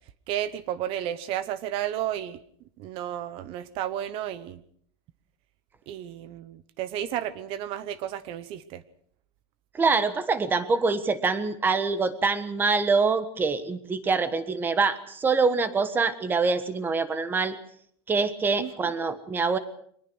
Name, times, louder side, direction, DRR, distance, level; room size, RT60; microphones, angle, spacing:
voice 1, 0.3-2.4 2.8-4.6 5.9-8.8 18.6-18.7, right 11 dB, 40° right, 16 dB, 0.9 m, -32 dB
voice 2, 9.7-17.6 18.1-19.6, right 4 dB, 15° right, 12 dB, 1.4 m, -25 dB
23.5 x 20.0 x 6.3 m, 0.63 s
supercardioid pair, 170°, 14 cm